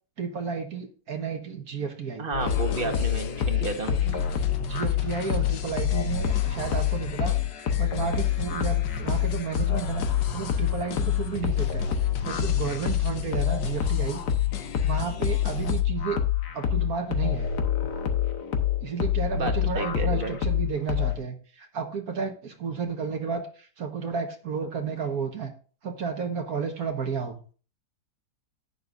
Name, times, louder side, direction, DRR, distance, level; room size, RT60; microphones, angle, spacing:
voice 1, 0.2-2.3 2.8-2.9 3.9-4.2 4.6-7.3 7.8-10.0 10.3-11.8 12.2-14.2 14.8-16.2 16.5-17.5 18.8-25.5 25.8-27.4, right 6 dB, 60° right, 4 dB, 1.7 m, -32 dB
voice 2, 2.2-3.9 19.3-20.4, right 3 dB, 35° right, 5 dB, 1.3 m, -32 dB
sound 1, 2.3-21.1, left 9 dB, 70° left, 1.7 m, -27 dB
sound 2, 2.4-15.8, left 7 dB, 90° left, 1.5 m, -36 dB
11.0 x 8.9 x 2.5 m, 0.38 s
omnidirectional pair, 1.8 m